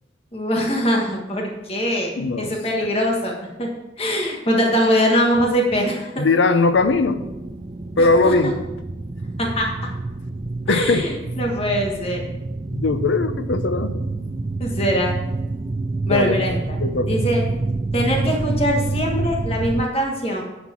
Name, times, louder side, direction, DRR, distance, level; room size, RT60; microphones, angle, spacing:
voice 1, 0.3-3.7 4.0-6.2 8.0-8.3 9.4-9.7 10.7-12.2 14.6-15.1 16.0-17.4 17.9-20.4, equal, 30° left, 0 dB, 1.5 m, -22 dB
voice 2, 2.2-2.5 2.8-2.9 6.2-7.2 8.0-8.5 10.7-11.1 12.7-14.0 16.1-16.4 16.8-17.2, left 3 dB, 75° left, 10 dB, 0.6 m, -19 dB
sound 1, 6.7-19.9, right 3 dB, 30° right, 0.3 m, -27 dB
10.0 x 4.4 x 5.7 m, 0.97 s
head